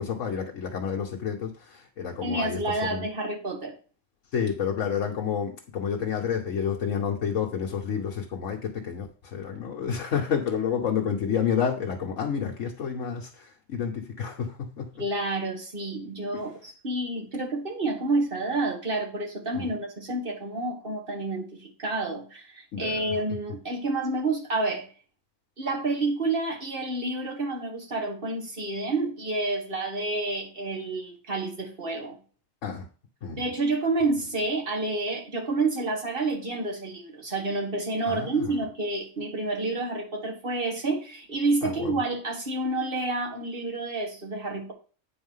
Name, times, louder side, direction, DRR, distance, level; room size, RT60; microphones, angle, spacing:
voice 1, 0.0-3.0 4.3-15.0 16.3-16.4 19.5-19.7 22.7-23.2 32.6-32.9 33.2-33.4 38.1-38.6 41.6-42.0, left 7 dB, 65° left, 1 dB, 1.3 m, -30 dB
voice 2, 2.2-3.7 15.0-24.9 25.6-32.2 33.4-44.7, right 2 dB, 40° right, 1 dB, 1.8 m, -29 dB
8.9 x 4.3 x 5.6 m, 0.39 s
omnidirectional pair, 1.4 m